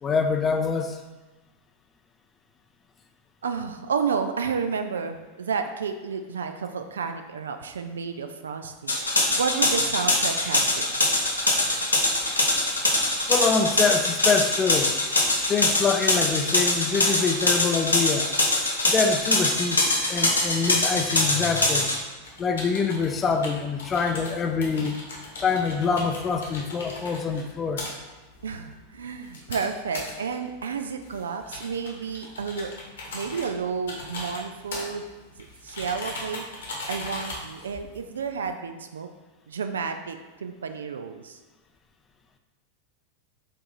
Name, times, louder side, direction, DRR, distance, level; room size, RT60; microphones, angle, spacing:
voice 1, 0.0-1.0 13.3-15.0 15.4-18.3 18.9-21.9 22.4-25.0 25.4-27.8, left 5 dB, 20° left, 5 dB, 0.4 m, -25 dB
voice 2, 3.4-9.0 9.4-10.9 28.4-32.7 33.1-35.0 35.6-36.5 36.9-39.1 39.5-41.4, right 6 dB, 65° right, 7 dB, 0.3 m, -31 dB
sound 1, 8.9-22.0, left 2 dB, 80° left, 0.8 m, -23 dB
sound 2, 21.0-38.5, left 2 dB, 65° left, 1.1 m, -40 dB
5.1 x 2.6 x 3.9 m, 1.2 s
figure-of-eight pair, 90°, 0 cm